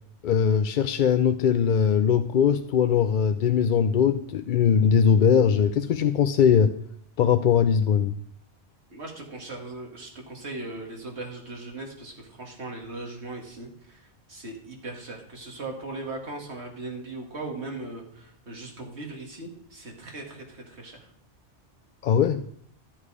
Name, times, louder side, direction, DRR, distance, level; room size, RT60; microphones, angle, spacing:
voice 1, 0.2-6.7 7.2-8.1 22.0-22.4, left 7 dB, 60° left, 10 dB, 0.6 m, -21 dB
voice 2, 8.9-21.1, right 2 dB, 70° right, 1 dB, 2.4 m, -39 dB
13.0 x 7.3 x 4.9 m, 0.65 s
omnidirectional pair, 1.2 m